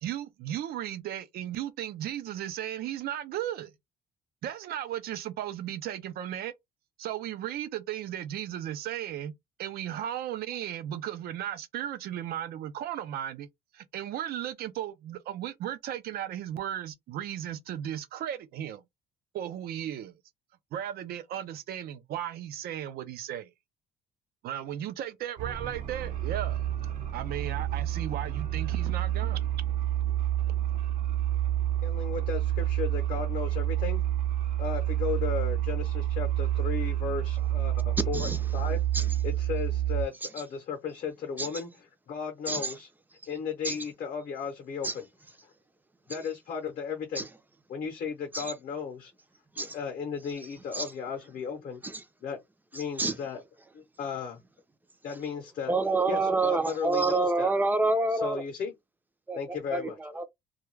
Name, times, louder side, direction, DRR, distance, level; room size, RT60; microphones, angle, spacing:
voice 1, 0.0-3.7 4.4-6.5 7.0-9.3 9.6-13.5 13.7-18.8 19.3-20.2 20.7-23.5 24.4-26.7 27.1-29.4, right 11 dB, 65° right, 0.5 m, -35 dB
sound 1, 25.4-40.1, right 12 dB, 50° right, 1.0 m, -29 dB
voice 2, 31.8-34.0 34.6-38.8 39.2-42.9 43.3-45.1 45.4-45.5 46.1-47.2 47.7-49.1 49.6-51.8 52.2-52.4 52.7-53.4 53.7-54.4 55.0-55.7 56.1-57.5 58.1-58.7 59.3-60.0, left 6 dB, 55° left, 0.7 m, -35 dB
voice 3, 52.7-53.1 55.7-58.4 59.3-60.2, right 3 dB, 10° right, 0.5 m, -28 dB
2.3 x 2.2 x 3.1 m
cardioid pair, 110°, 17 cm